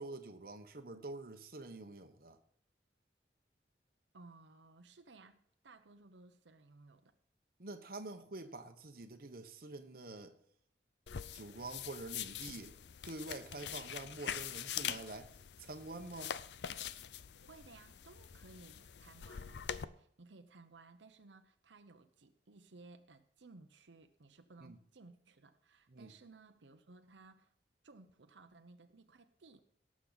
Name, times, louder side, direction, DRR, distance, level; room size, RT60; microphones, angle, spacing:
voice 1, 0.0-2.4 7.6-10.3 11.3-12.7 13.0-15.3 15.6-16.3 24.6-24.8 25.9-26.1, right 2 dB, 55° right, 1.1 m, -47 dB
voice 2, 4.1-7.1 17.5-27.5 27.8-29.6, right 3 dB, 90° right, 0.8 m, -59 dB
sound 1, 11.1-19.8, left 9 dB, 75° left, 0.5 m, -44 dB
18.0 x 7.4 x 4.0 m
head